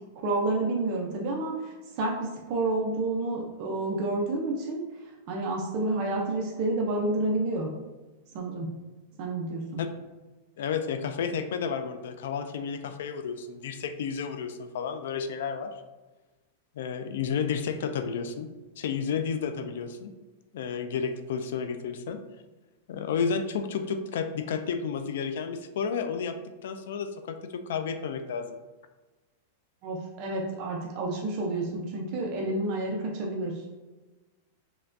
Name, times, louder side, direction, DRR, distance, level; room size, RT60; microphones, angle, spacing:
voice 1, 0.2-4.8 5.3-7.7 8.3-8.7 9.2-9.8 29.8-33.6, right 2 dB, 30° right, -1 dB, 0.5 m, -29 dB
voice 2, 10.6-15.7 16.8-18.5 18.8-20.1 20.5-22.2 22.9-26.4 26.6-28.6, left 6 dB, 60° left, 9 dB, 0.3 m, -31 dB
5.6 x 2.2 x 2.6 m, 1.2 s
supercardioid pair, 180°, 0 cm